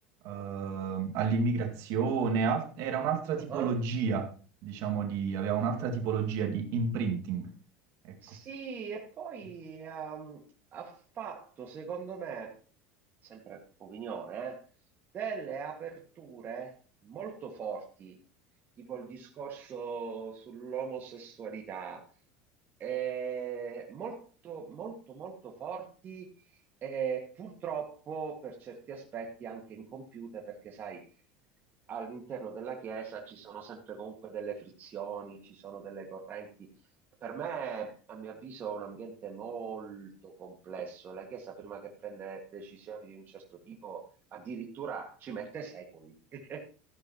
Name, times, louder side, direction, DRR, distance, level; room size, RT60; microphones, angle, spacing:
voice 1, 0.2-4.3 4.6-7.5 8.0-8.2, right 5 dB, 60° right, 2.2 m, -30 dB
voice 2, 8.2-10.4 10.7-12.6 13.2-14.6 15.1-18.2 18.8-22.1 22.8-26.3 26.8-31.0 31.9-36.5 37.2-44.1 44.3-46.6, right 6 dB, 35° right, 2.0 m, -40 dB
14.5 x 10.0 x 3.0 m
supercardioid pair, 125°, 6 cm